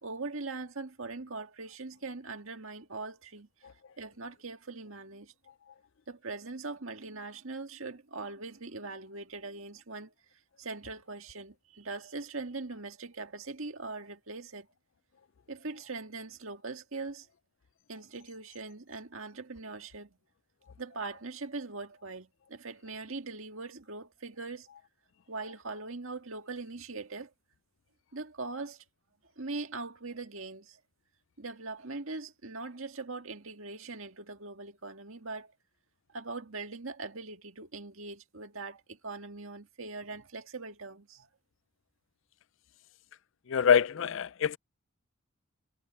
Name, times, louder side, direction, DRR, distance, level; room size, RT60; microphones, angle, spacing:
voice 1, 0.0-3.5 4.0-5.3 6.1-10.1 10.6-14.7 15.5-17.3 17.9-20.2 20.8-24.7 25.3-27.3 28.1-28.8 29.4-30.8 31.4-35.5 36.1-41.3, right 3 dB, 70° right, 1.9 m, -41 dB
voice 2, 43.5-44.6, left 7 dB, 60° left, 0.4 m, -25 dB
head